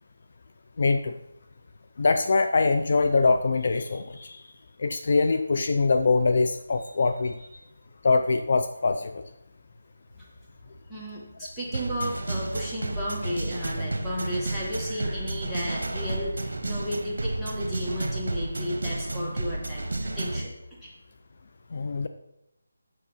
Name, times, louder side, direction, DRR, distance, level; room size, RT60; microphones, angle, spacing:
voice 1, 0.8-1.1 2.0-4.4 4.8-7.3 8.0-9.2 21.7-22.1, left 3 dB, 50° left, 8 dB, 0.5 m, -23 dB
voice 2, 10.9-20.9, equal, ahead, -10 dB, 2.1 m, -34 dB
sound 1, 11.7-20.5, right 2 dB, 70° right, 1.3 m, -31 dB
7.7 x 6.6 x 5.7 m, 0.87 s
figure-of-eight pair, 165°, 0 cm